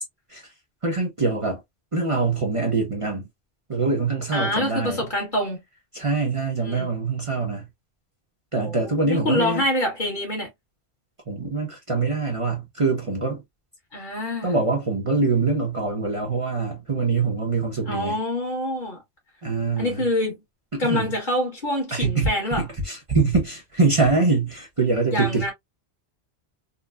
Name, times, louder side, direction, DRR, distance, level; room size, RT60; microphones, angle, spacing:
voice 1, 0.8-1.6 1.9-3.3 3.7-5.0 5.9-7.7 8.5-9.6 11.3-13.4 14.4-18.2 19.4-20.1 20.7-21.1 21.9-25.5, right 3 dB, 30° right, 0.9 m, -24 dB
voice 2, 4.3-5.6 6.6-6.9 8.6-10.5 13.9-14.5 17.9-19.0 19.8-20.4 20.8-22.7 25.1-25.5, left 1 dB, 45° left, 1.8 m, -26 dB
3.8 x 2.2 x 2.2 m
omnidirectional pair, 1.1 m